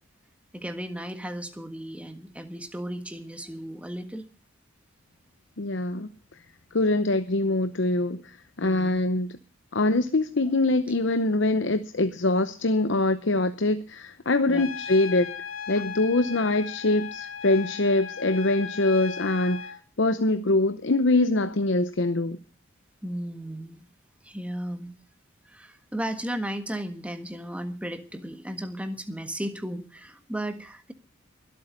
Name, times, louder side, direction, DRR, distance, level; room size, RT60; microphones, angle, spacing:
voice 1, 0.5-4.2 8.6-9.0 14.5-14.7 23.0-23.9 24.2-24.9 25.5-30.9, right 1 dB, 5° right, 1.5 m, -35 dB
voice 2, 5.6-6.1 6.7-9.4 9.7-15.3 15.7-22.4, left 2 dB, 60° left, 0.8 m, -24 dB
Trumpet, 14.6-19.8, left 7 dB, 90° left, 1.8 m, -37 dB
23.0 x 8.5 x 5.2 m
head